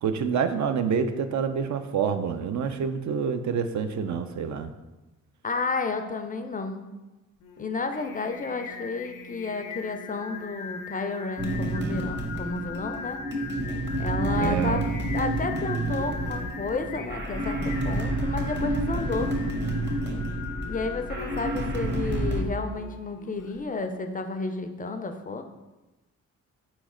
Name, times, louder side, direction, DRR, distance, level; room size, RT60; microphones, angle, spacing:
voice 1, 0.0-4.7 14.3-14.8, right 6 dB, 60° right, 9 dB, 0.4 m, -27 dB
voice 2, 5.4-6.9 7.6-13.2 14.0-14.9 15.1-19.3 20.7-25.4, left 3 dB, 25° left, 7 dB, 0.4 m, -31 dB
Singing, 7.4-23.7, left 6 dB, 75° left, 0.5 m, -41 dB
sound 1, 11.4-22.4, right 1 dB, 35° right, 0.9 m, -29 dB
4.2 x 3.1 x 3.6 m, 1.1 s
supercardioid pair, 60°, 32 cm